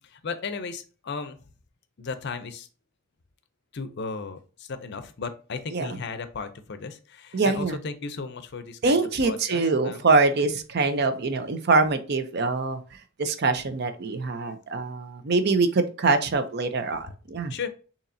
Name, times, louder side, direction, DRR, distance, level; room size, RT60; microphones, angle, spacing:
voice 1, 0.0-1.4 2.0-2.7 3.7-10.0 17.5-17.7, left 4 dB, 55° left, 11 dB, 0.5 m, -35 dB
voice 2, 7.3-7.8 8.8-17.5, right 3 dB, 50° right, 9 dB, 0.6 m, -24 dB
6.8 x 2.9 x 2.6 m, 0.37 s
head